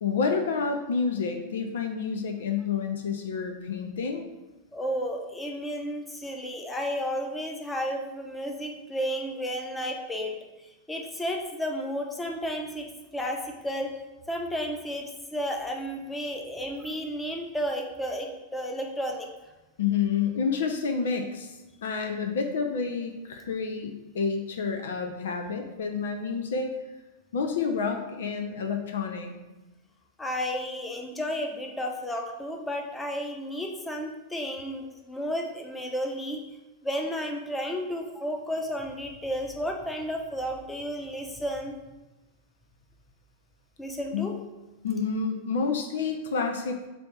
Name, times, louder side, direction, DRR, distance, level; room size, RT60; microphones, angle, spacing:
voice 1, 0.0-4.3 19.8-26.8 27.3-29.3 44.1-44.3 44.8-46.9, left 5 dB, 60° left, 5 dB, 0.6 m, -29 dB
voice 2, 4.7-12.9 13.1-13.9 14.3-19.3 30.2-36.4 36.8-41.7 43.8-44.3, equal, 10° left, 2 dB, 0.9 m, -32 dB
7.6 x 2.8 x 4.6 m, 1.1 s
figure-of-eight pair, 90°, 0 cm